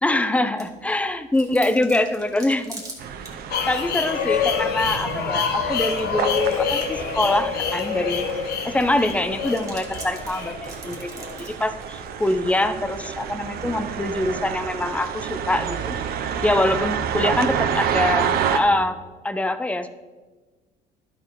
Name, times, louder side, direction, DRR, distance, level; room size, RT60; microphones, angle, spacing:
voice 1, 0.0-2.8 3.7-8.3 8.6-11.1 11.4-16.0 16.4-19.0 19.2-19.9, left 1 dB, 10° left, 10 dB, 0.5 m, -24 dB
Chewing mastication, 0.6-18.2, right 2 dB, 20° right, 1.9 m, -47 dB
sound 1, 3.0-18.6, right 8 dB, 65° right, 0.7 m, -29 dB
sound 2, 3.5-11.4, left 7 dB, 70° left, 0.9 m, -27 dB
11.5 x 4.4 x 4.7 m, 1.3 s
cardioid pair, 110°, 17 cm